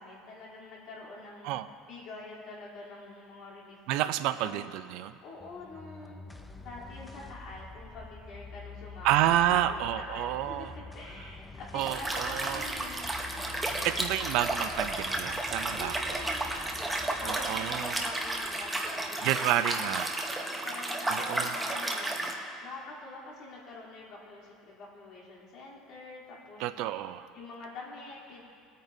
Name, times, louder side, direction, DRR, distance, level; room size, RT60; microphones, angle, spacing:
voice 1, 0.0-1.5 1.8-3.8 4.4-4.6 5.2-6.2 6.6-10.7 10.9-13.0 15.8-19.9 20.2-22.2 22.6-26.6 27.3-28.4, left 3 dB, 55° left, -6 dB, 3.2 m, -46 dB
voice 2, 3.9-5.1 9.0-10.7 11.7-12.7 13.8-16.2 17.2-18.0 19.2-20.1 21.1-21.5 26.6-27.3, right 12 dB, 65° right, 12 dB, 0.4 m, -29 dB
sound 1, 5.4-20.0, left 4 dB, 10° left, 0.4 m, -47 dB
Liquid, 11.8-22.3, right 1 dB, 5° right, 0.9 m, -33 dB
20.0 x 9.0 x 2.7 m, 2.3 s
cardioid pair, 155°, 0 cm